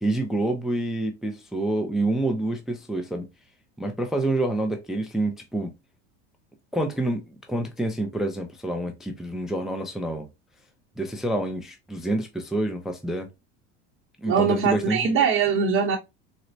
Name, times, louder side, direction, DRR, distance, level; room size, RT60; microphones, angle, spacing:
voice 1, 0.0-3.3 3.8-5.7 6.7-10.3 11.0-13.3 14.2-15.1, right 1 dB, ahead, 0.4 m, -27 dB
voice 2, 14.3-16.0, right 6 dB, 40° right, 0.8 m, -22 dB
4.2 x 2.1 x 2.5 m
supercardioid pair, 115°, 33 cm